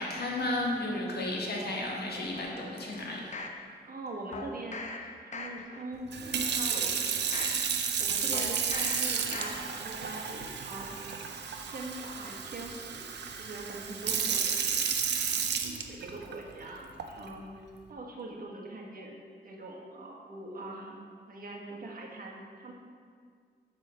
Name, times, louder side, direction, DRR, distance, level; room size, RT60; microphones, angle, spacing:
voice 1, 0.0-3.2, left 1 dB, 65° left, -2 dB, 1.5 m, -33 dB
sound 1, 2.3-3.6 4.3-5.0 5.3-5.8 6.3-7.6 8.3-9.0 9.3-9.8 10.2-10.3, left 3 dB, 45° left, 0.7 m, -42 dB
voice 2, 3.9-7.7 8.0-11.1 11.6-13.1 13.4-14.9 15.9-17.5 17.9-19.2 19.4-21.0 21.3-22.7, right 2 dB, 55° right, -1 dB, 1.3 m, -42 dB
Sink (filling or washing) / Fill (with liquid), 6.1-16.3 17.0-17.3, right 6 dB, 80° right, 0.6 m, -32 dB
7.7 x 3.7 x 6.3 m, 2.1 s
wide cardioid pair, 95°, 18 cm